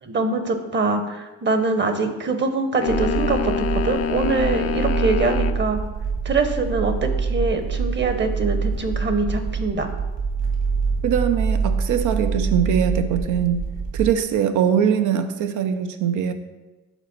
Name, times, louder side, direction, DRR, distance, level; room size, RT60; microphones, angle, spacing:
voice 1, 0.0-5.8 6.2-9.9, right 3 dB, 35° right, 8 dB, 1.0 m, -23 dB
sound 1, 2.8-5.6, left 7 dB, 55° left, 0.5 m, -26 dB
sound 2, 2.9-14.1, right 5 dB, 60° right, 2.0 m, -25 dB
voice 2, 11.0-13.6 13.9-16.3, right 8 dB, 80° right, 9 dB, 0.7 m, -22 dB
8.2 x 4.1 x 6.0 m, 1.1 s
cardioid pair, 90°, 30 cm